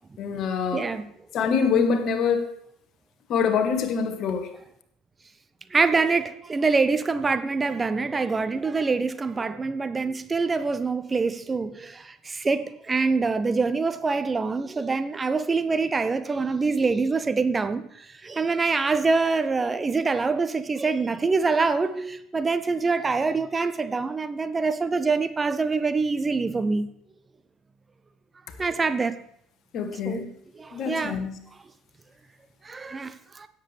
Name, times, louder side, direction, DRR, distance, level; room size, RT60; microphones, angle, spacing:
voice 1, 0.2-0.9 1.3-2.5 3.3-4.5 29.7-30.3 30.7-31.4, left 6 dB, 50° left, 1.3 m, -25 dB
voice 2, 0.7-1.1 5.7-26.9 28.6-29.2 30.0-30.2 30.6-31.2 32.6-33.5, right 4 dB, 25° right, 0.6 m, -25 dB
16.5 x 7.5 x 3.3 m
figure-of-eight pair, 60°, 0 cm